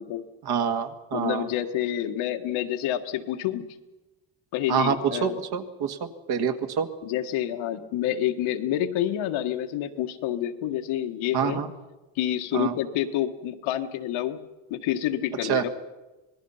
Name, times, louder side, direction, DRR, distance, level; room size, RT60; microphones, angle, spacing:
voice 1, 0.4-1.5 4.7-5.0 5.2-6.9 11.3-11.7 12.5-12.7 15.4-15.6, right 7 dB, 55° right, 7 dB, 1.9 m, -26 dB
voice 2, 1.1-3.7 4.5-5.4 7.0-11.6 12.2-14.4 14.7-15.7, left 11 dB, 90° left, 6 dB, 1.7 m, -28 dB
26.5 x 20.0 x 5.7 m, 1.1 s
cardioid pair, 140°, 47 cm